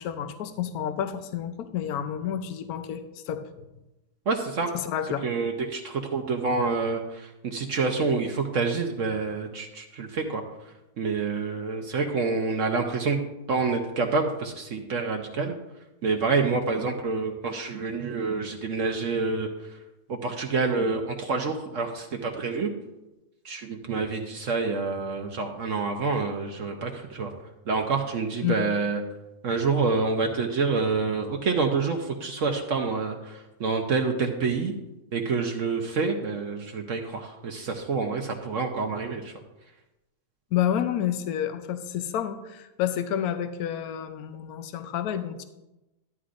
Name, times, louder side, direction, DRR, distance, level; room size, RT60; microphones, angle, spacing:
voice 1, 0.0-3.5 4.7-5.3 28.4-28.6 40.5-45.4, left 10 dB, 70° left, 9 dB, 1.1 m, -29 dB
voice 2, 4.3-4.7 5.2-10.4 11.0-13.2 13.5-15.5 16.0-19.5 20.1-22.7 23.4-27.3 27.7-29.0 29.4-34.7 35.1-39.3, right 4 dB, 60° right, 3 dB, 1.0 m, -27 dB
12.5 x 9.6 x 2.5 m, 0.98 s
omnidirectional pair, 1.7 m